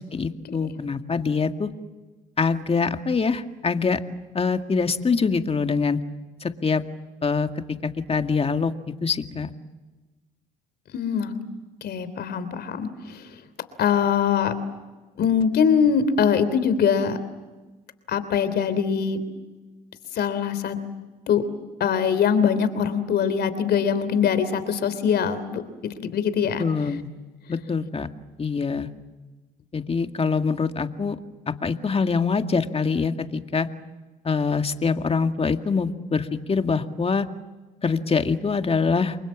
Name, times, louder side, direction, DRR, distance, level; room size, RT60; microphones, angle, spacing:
voice 1, 0.0-1.7 2.4-4.0 4.3-6.0 6.4-6.8 7.2-7.5 7.8-8.7 9.0-9.5 26.6-27.1 27.5-28.1 28.4-28.9 29.7-31.2 31.5-33.7 34.2-37.3 37.8-39.2, left 5 dB, 35° left, 7 dB, 2.1 m, -24 dB
voice 2, 10.9-11.3 11.8-13.3 13.8-14.5 15.2-17.2 18.1-19.2 20.1-20.8 21.3-21.4 21.8-25.6 26.0-26.6, left 7 dB, 65° left, 13 dB, 3.3 m, -22 dB
30.0 x 23.0 x 7.4 m, 1.2 s
supercardioid pair, 65°, 18 cm